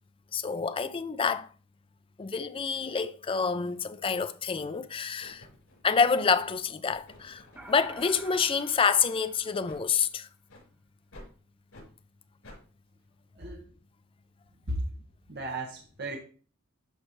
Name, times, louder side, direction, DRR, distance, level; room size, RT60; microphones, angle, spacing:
voice 1, 0.3-1.5 2.2-5.5 5.8-10.3, left 5 dB, 25° left, 0.4 m, -27 dB
sound 1, 3.7-3.9 4.5-4.8 5.2-8.6 9.0-9.2 9.6-9.8 10.5-10.7 11.1-11.3 11.7-11.9 12.4-12.6, left 1 dB, 85° left, 4.4 m, -53 dB
sound 2, 7.6-10.2, right 1 dB, 10° right, 0.7 m, -49 dB
voice 2, 15.3-16.2, right 1 dB, 50° right, 1.4 m, -35 dB
12.5 x 4.4 x 3.1 m
head